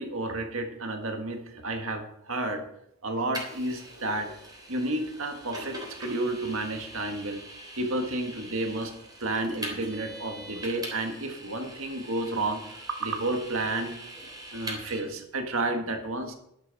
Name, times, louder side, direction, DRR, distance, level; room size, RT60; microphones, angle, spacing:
voice 1, 0.0-2.6 3.0-4.3 4.7-7.4 7.8-8.9 9.2-12.6 12.9-13.9 14.5-16.3, right 2 dB, 70° right, 4 dB, 1.7 m, -31 dB
Vehicle, 3.3-15.0, right 1 dB, 20° right, 3.4 m, -42 dB
12.5 x 12.0 x 4.1 m, 0.74 s
head